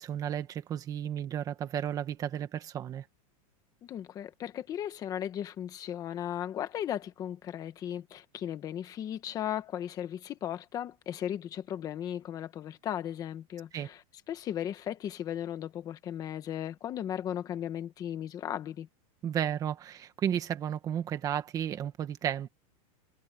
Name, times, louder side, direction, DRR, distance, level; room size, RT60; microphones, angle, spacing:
voice 1, 0.0-3.0 13.7-13.9 19.2-22.5, right 9 dB, 20° right, 1.5 m, -33 dB
voice 2, 3.8-14.0 14.3-18.9, left 10 dB, 20° left, 1.3 m, -36 dB
supercardioid pair, 175°, 19 cm